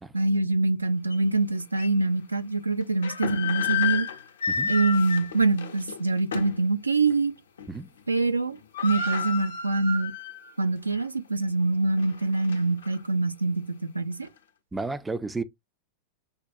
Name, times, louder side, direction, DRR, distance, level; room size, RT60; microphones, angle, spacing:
voice 1, 0.1-4.1 4.7-7.3 8.1-8.6 8.8-10.1 10.6-14.3, right 3 dB, 80° right, 0.4 m, -25 dB
sound 1, 1.1-1.2 1.8-1.9 2.8-6.7 7.1-7.2 7.6-8.0 8.3-8.4 8.5-10.5 10.9-11.0 11.6-13.0, left 6 dB, 65° left, 0.6 m, -31 dB
voice 2, 14.7-15.4, right 3 dB, 10° right, 0.4 m, -32 dB
5.1 x 2.2 x 2.6 m
figure-of-eight pair, 90°, 0 cm